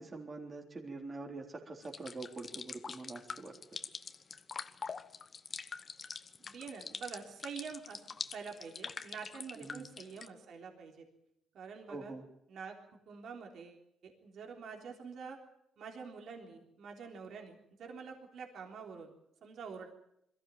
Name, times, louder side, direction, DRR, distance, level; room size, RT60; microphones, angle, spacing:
voice 1, 0.0-3.8 9.6-9.9 11.9-12.3, right 3 dB, 30° right, 1 dB, 3.7 m, -45 dB
sound 1, 1.8-10.3, left 5 dB, 40° left, 1.1 m, -44 dB
voice 2, 6.4-8.0 8.3-11.1 11.5-12.1 12.5-12.7 13.1-15.4 15.8-19.1 19.4-19.9, right 5 dB, 65° right, 2 dB, 3.5 m, -47 dB
22.0 x 14.5 x 9.0 m, 0.76 s
cardioid pair, 90°, 0 cm